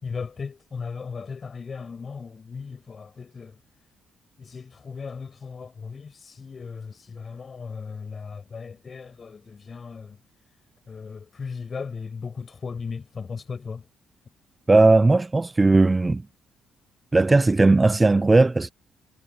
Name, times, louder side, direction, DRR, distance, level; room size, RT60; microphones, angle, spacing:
voice 1, 0.0-3.5 4.4-6.1 6.4-10.2 10.9-13.8, left 5 dB, 40° left, 6.1 m, -36 dB
voice 2, 14.7-16.2 17.1-18.7, right 3 dB, 20° right, 0.6 m, -17 dB
cardioid pair, 90°, 0 cm